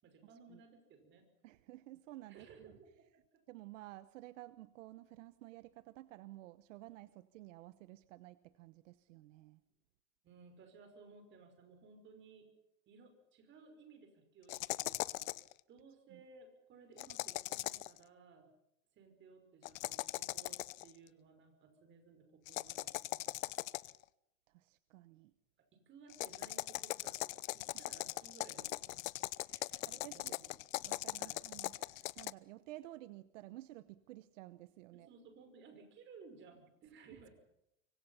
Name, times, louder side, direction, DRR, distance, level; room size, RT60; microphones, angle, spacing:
voice 1, 0.0-1.3 2.3-2.9 10.2-12.5 12.9-15.3 15.7-18.5 18.9-23.6 25.7-29.1 29.8-30.5 31.2-31.4 34.9-37.3, right 4 dB, 30° right, 6 dB, 5.9 m, -59 dB
voice 2, 1.4-2.7 3.5-9.6 16.1-16.2 24.5-25.3 27.7-27.8 29.5-30.4 30.8-35.1 37.1-37.3, right 16 dB, 70° right, 14 dB, 1.2 m, -53 dB
sound 1, 14.5-15.5 17.0-18.0 19.6-20.9 22.5-24.0 26.1-32.3, left 18 dB, 80° left, 0.9 m, -40 dB
25.5 x 24.5 x 5.8 m, 0.82 s
supercardioid pair, 165°, 39 cm